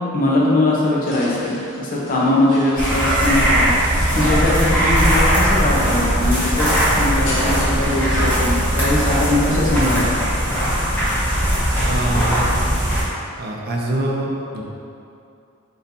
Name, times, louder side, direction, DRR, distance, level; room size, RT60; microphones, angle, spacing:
voice 1, 0.1-3.7 4.1-6.7 7.0-10.2, left 1 dB, 40° left, -5 dB, 0.8 m, -20 dB
sound 1, 1.0-5.3 5.7-9.2, left 1 dB, 60° left, 1.3 m, -36 dB
sound 2, 2.8-13.0, equal, 10° left, 1.1 m, -19 dB
voice 2, 11.8-12.7 13.4-14.6, right 1 dB, 45° right, -2 dB, 0.5 m, -24 dB
4.2 x 4.0 x 2.7 m, 2.6 s
head